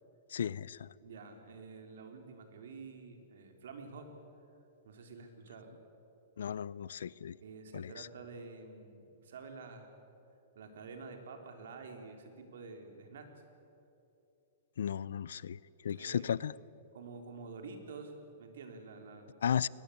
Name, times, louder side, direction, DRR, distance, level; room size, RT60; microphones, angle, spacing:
voice 1, 0.3-0.9 6.4-7.4 7.7-8.1 14.8-16.5 19.4-19.7, left 8 dB, 85° left, 22 dB, 0.5 m, -35 dB
voice 2, 1.0-4.1 4.8-5.7 7.4-9.9 10.6-13.4 16.0-16.3 16.9-19.4, right 4 dB, 75° right, 5 dB, 3.8 m, -49 dB
21.5 x 19.5 x 8.6 m, 2.8 s
hypercardioid pair, 165°, 0 cm